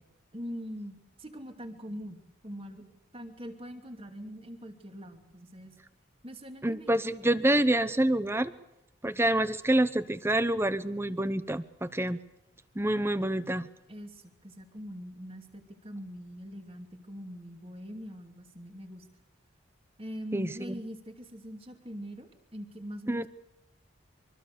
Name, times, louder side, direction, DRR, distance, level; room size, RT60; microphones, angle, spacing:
voice 1, 0.3-5.8 6.2-7.0 13.9-19.1 20.0-23.3, equal, 25° right, 5 dB, 2.6 m, -43 dB
voice 2, 6.6-8.5 9.0-12.2 12.7-13.7 20.3-20.8 23.1-23.3, right 1 dB, 10° right, 14 dB, 0.8 m, -27 dB
25.0 x 24.0 x 6.8 m, 0.90 s
head